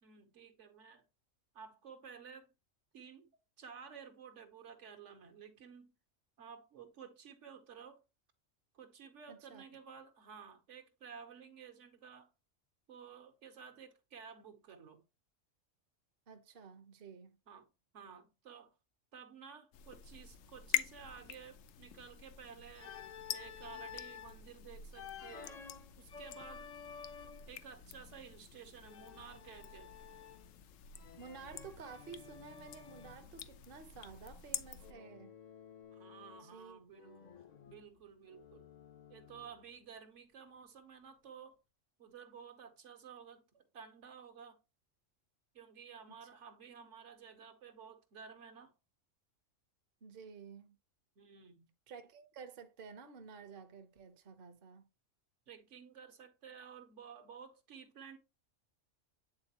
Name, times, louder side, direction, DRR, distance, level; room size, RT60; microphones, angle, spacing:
voice 1, 0.0-1.1 1.5-2.5 2.9-3.3 3.6-5.9 6.4-8.0 8.7-12.3 12.9-15.0 17.5-17.7 17.9-18.7 19.1-23.0 23.3-25.6 26.0-26.7 27.5-29.9 35.9-37.3 37.7-38.7 39.1-41.6 42.0-44.6 45.5-48.7 51.2-51.7 55.5-58.2, right 7 dB, 70° right, 1.3 m, -53 dB
voice 2, 9.3-9.6 16.3-17.4 31.2-35.3 36.4-36.8 46.2-46.3 50.0-50.8 51.9-54.9, right 6 dB, 50° right, 0.9 m, -52 dB
sound 1, 19.7-34.9, left 10 dB, 80° left, 0.9 m, -46 dB
Organ, 22.7-24.4 24.9-27.6 28.8-30.6 30.9-33.3 34.8-36.6 36.9-39.7, left 7 dB, 45° left, 0.5 m, -53 dB
8.8 x 3.9 x 2.9 m
omnidirectional pair, 1.3 m